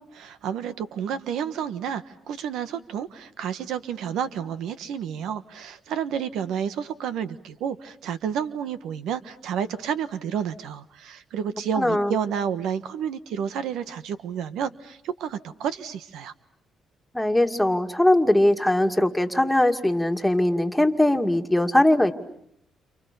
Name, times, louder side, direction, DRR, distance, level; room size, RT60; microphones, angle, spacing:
voice 1, 0.1-16.3, right 8 dB, 85° right, 12 dB, 1.3 m, -30 dB
voice 2, 11.7-12.2 17.1-22.1, left 1 dB, 5° left, 5 dB, 2.4 m, -20 dB
30.0 x 29.0 x 6.9 m, 0.73 s
cardioid pair, 95°, 0 cm